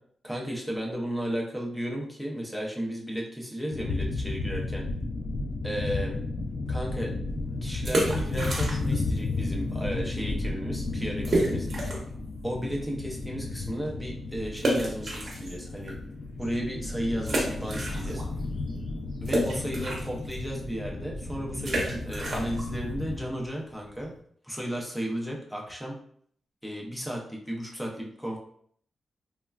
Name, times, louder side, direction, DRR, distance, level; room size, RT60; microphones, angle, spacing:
voice 1, 0.2-4.9 5.6-6.2 6.7-7.1 7.6-11.7 12.4-15.9 16.4-18.2 19.2-24.1 24.4-26.0 26.6-28.4, equal, ahead, -2 dB, 0.5 m, -34 dB
sound 1, 3.7-23.2, left 3 dB, 70° left, 0.3 m, -33 dB
sound 2, 7.7-9.1 9.3-9.4 10.0-10.2 10.4-10.5 11.2-12.2 12.6-12.7 14.6-15.9 16.4-16.5 17.2-18.4 18.7-24.2, right 1 dB, 45° right, 0.8 m, -31 dB
3.2 x 2.1 x 2.3 m, 0.63 s
wide cardioid pair, 160°, 0 cm